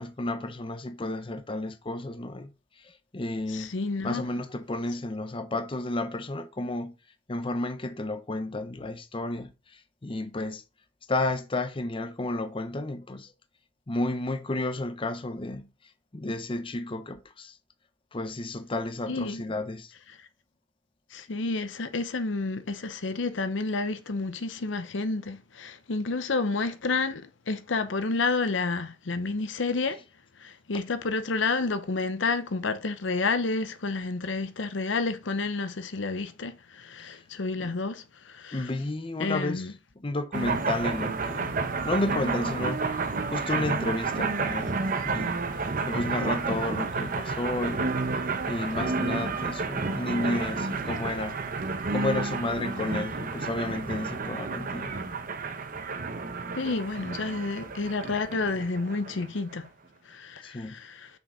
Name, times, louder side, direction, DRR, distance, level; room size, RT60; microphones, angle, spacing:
voice 1, 0.0-2.5 3.1-3.7 4.0-7.0 7.3-9.5 10.0-10.6 11.1-13.3 13.9-15.7 16.1-17.5 18.1-19.9 37.6-37.7 38.5-39.7 40.0-41.6 41.8-44.8 45.0-45.4 45.9-47.9 48.5-51.4 51.9-54.9 60.4-60.8, left 2 dB, 30° left, 0.7 m, -31 dB
voice 2, 3.5-4.2 19.1-19.4 21.1-27.2 27.5-30.0 30.4-38.0 38.4-38.7 39.2-39.7 56.5-59.7 60.1-61.1, left 3 dB, 80° left, 0.8 m, -30 dB
sound 1, 40.3-59.5, right 4 dB, 50° right, 0.9 m, -31 dB
6.2 x 5.7 x 4.3 m
head